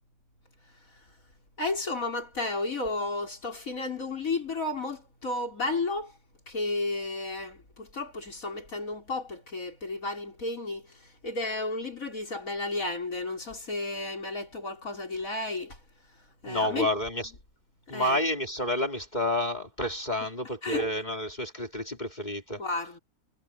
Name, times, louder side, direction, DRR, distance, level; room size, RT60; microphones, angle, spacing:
voice 1, 1.6-6.1 6.5-10.8 11.2-15.8 16.4-16.9 17.9-18.2 20.6-20.9 22.6-23.0, left 2 dB, 65° left, 5.0 m, -32 dB
voice 2, 16.4-17.3 17.9-22.6, left 1 dB, 30° left, 3.4 m, -29 dB
omnidirectional pair, 1.5 m